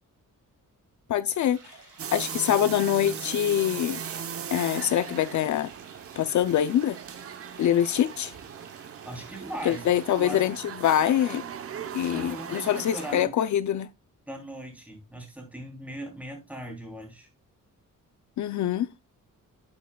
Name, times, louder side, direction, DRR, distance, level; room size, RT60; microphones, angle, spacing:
voice 1, 1.1-1.8 2.1-4.0 4.5-5.7 6.2-7.0 7.6-8.3 9.7-10.5 10.8-11.4 11.9-13.9 18.4-18.9, left 10 dB, 65° left, 0.5 m, -24 dB
sound 1, 1.4-10.4, right 5 dB, 70° right, 3.4 m, -52 dB
sound 2, 2.0-13.2, right 8 dB, 45° right, 0.8 m, -39 dB
voice 2, 9.0-10.5 12.1-13.4 14.3-17.3, right 1 dB, 5° right, 3.0 m, -39 dB
11.5 x 7.3 x 2.2 m
wide cardioid pair, 175°, 32 cm